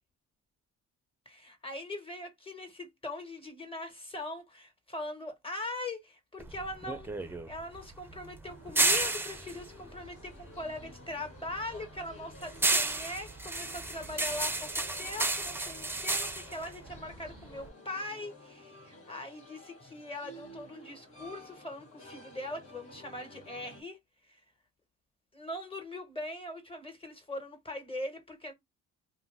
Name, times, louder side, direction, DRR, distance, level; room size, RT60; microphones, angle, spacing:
voice 1, 1.2-14.7 15.0-24.0 24.3-24.4 25.3-28.5, left 1 dB, 20° left, 1.4 m, -41 dB
sound 1, 6.4-10.9 11.2-17.7, right 2 dB, 5° right, 0.5 m, -32 dB
sound 2, 8.4-23.8, left 1 dB, 50° left, 1.6 m, -53 dB
2.5 x 2.2 x 3.3 m
cardioid pair, 90°, 30 cm